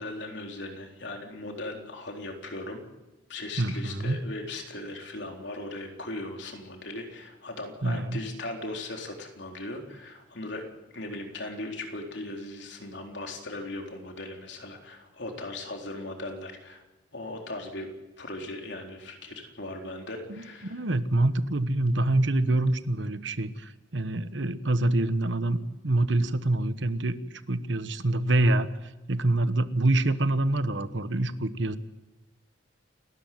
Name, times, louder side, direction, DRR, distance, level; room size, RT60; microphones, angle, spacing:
voice 1, 0.0-2.8 3.3-10.6 10.9-16.8 17.1-17.9 18.2-20.9, left 2 dB, 65° left, 2 dB, 4.0 m, -38 dB
voice 2, 3.6-4.2 7.8-8.2 20.3-25.6 25.8-27.2 27.5-28.7 29.1-31.8, right 2 dB, 70° right, 12 dB, 1.2 m, -26 dB
29.0 x 13.0 x 9.3 m, 1.1 s
head